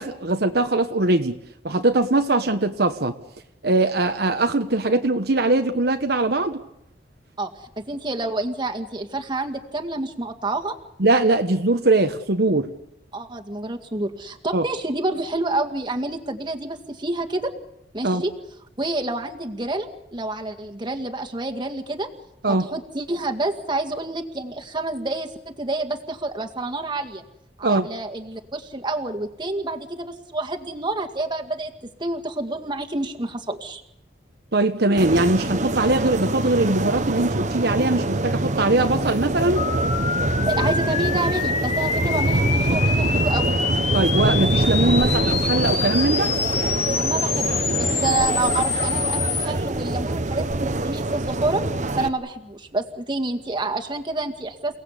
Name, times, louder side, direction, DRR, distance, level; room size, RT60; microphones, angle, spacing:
voice 1, 0.0-1.4 1.6-3.1 3.6-6.6 11.0-12.7 14.5-14.6 18.0-18.2 22.4-22.7 27.6-27.9 34.5-39.6 43.9-46.3, right 2 dB, 65° right, 6 dB, 1.2 m, -21 dB
voice 2, 7.8-10.8 13.1-17.5 17.9-18.3 18.8-22.1 22.5-27.2 27.6-33.8 40.4-43.6 47.0-50.5 50.8-51.6 52.0-54.8, right 2 dB, 25° right, 3 dB, 1.9 m, -28 dB
sound 1, 35.0-52.1, right 2 dB, 45° right, 1.1 m, -24 dB
sound 2, 39.6-49.5, left 6 dB, 35° left, 1.8 m, -26 dB
29.0 x 18.0 x 8.3 m, 0.80 s
head